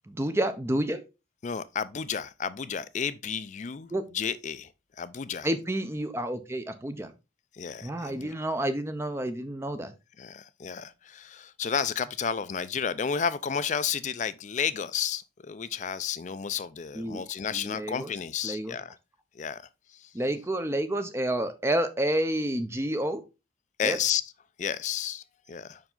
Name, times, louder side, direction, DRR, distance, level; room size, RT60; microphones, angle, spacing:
voice 1, 0.1-1.0 3.9-4.0 5.4-7.1 7.8-9.9 16.9-17.2 17.5-18.1 18.4-18.7 20.1-23.2 23.8-24.0, right 1 dB, 15° right, 0.5 m, -29 dB
voice 2, 1.4-4.7 5.0-5.5 7.5-8.3 10.2-19.0 19.4-20.1 23.8-24.2 24.6-25.8, left 7 dB, 40° left, 0.4 m, -32 dB
5.3 x 4.8 x 3.7 m
head